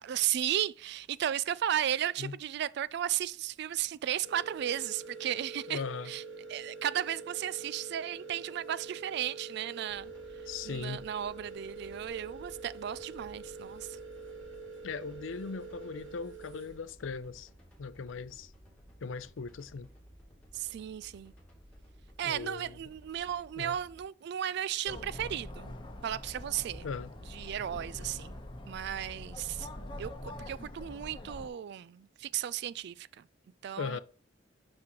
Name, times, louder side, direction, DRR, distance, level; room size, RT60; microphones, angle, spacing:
voice 1, 0.0-6.2 6.5-14.0 20.5-21.3 22.2-25.7 26.0-26.9 27.3-28.4 28.7-29.7 30.0-33.3 33.6-34.0, right 10 dB, 60° right, 0.3 m, -35 dB
sound 1, 4.2-16.8, right 4 dB, 75° right, 1.8 m, -46 dB
voice 2, 5.7-6.1 10.5-11.0 14.8-17.5 17.8-18.5 19.0-19.9 22.2-22.8 23.6-23.8 26.8-27.1 33.8-34.0, left 5 dB, 85° left, 0.5 m, -39 dB
sound 2, 9.9-24.0, equal, 5° left, 2.5 m, -57 dB
sound 3, 24.9-31.5, left 1 dB, 25° left, 1.1 m, -44 dB
6.0 x 6.0 x 3.0 m
head